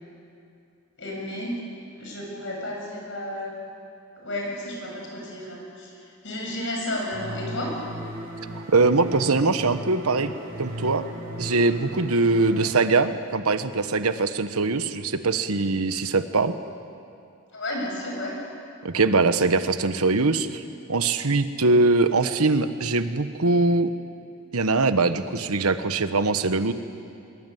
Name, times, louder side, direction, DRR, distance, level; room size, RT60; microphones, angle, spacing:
voice 1, 1.0-1.5 2.0-3.6 4.2-5.9 6.2-7.7 17.5-18.3, left 1 dB, 55° left, -1 dB, 7.4 m, -32 dB
sound 1, 7.1-12.7, equal, 45° right, 6.0 m, -36 dB
voice 2, 8.7-10.3 10.6-11.0 11.4-16.5 18.8-20.6 20.9-23.9 24.5-26.7, right 3 dB, 90° right, 10 dB, 1.2 m, -22 dB
22.5 x 22.5 x 9.4 m, 2.5 s
head